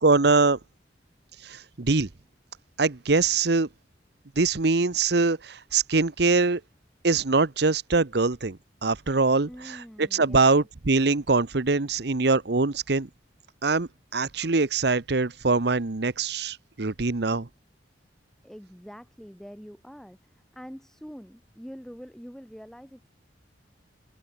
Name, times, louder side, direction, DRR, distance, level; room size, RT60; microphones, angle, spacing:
voice 1, 0.0-0.6 1.4-2.1 2.8-3.7 4.4-6.6 7.0-9.5 10.0-13.1 13.6-17.5, right 3 dB, 60° right, 1.0 m, -23 dB
voice 2, 9.5-10.5 18.4-23.1, equal, 5° left, 5.7 m, -45 dB
head